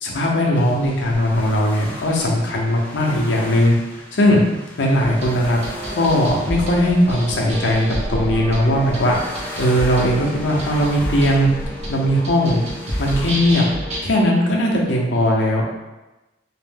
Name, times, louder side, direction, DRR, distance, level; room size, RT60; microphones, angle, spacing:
voice 1, 0.0-3.7 4.2-4.4 4.8-5.6 5.9-9.2 9.6-11.5 11.9-12.6 13.0-13.7 14.0-15.6, equal, 85° left, -2 dB, 0.6 m, -18 dB
sound 1, 0.5-13.3, left 1 dB, 10° left, 0.4 m, -37 dB
sound 2, 5.0-14.0, right 1 dB, 40° right, 0.7 m, -30 dB
2.5 x 2.0 x 3.4 m, 1.1 s
head